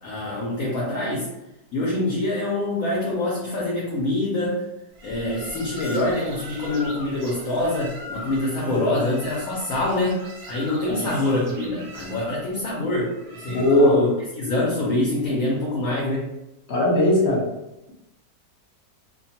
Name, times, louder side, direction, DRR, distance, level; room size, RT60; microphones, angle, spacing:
voice 1, 0.0-1.3 1.7-4.6 5.0-10.2 10.5-14.1 14.4-16.3, left 2 dB, 65° left, -5 dB, 1.0 m, -25 dB
sound 1, 4.9-14.2, left 1 dB, 65° right, 0.6 m, -40 dB
voice 2, 13.5-14.0 16.7-17.4, left 1 dB, 45° left, -6 dB, 1.1 m, -19 dB
2.7 x 2.2 x 2.8 m, 0.91 s
omnidirectional pair, 1.8 m